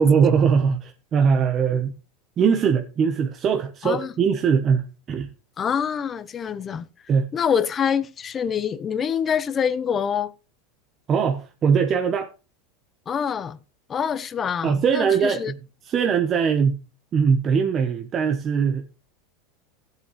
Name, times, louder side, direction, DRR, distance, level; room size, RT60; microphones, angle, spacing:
voice 1, 0.0-2.0 2.4-5.3 7.1-7.3 11.1-12.3 14.6-15.6 15.8-16.8 17.1-18.9, right 6 dB, 30° right, 1.0 m, -21 dB
voice 2, 5.6-6.8 7.3-10.3 13.1-13.6 13.9-15.5, left 7 dB, 25° left, 0.8 m, -25 dB
16.5 x 8.0 x 3.2 m
supercardioid pair, 140°, 0 cm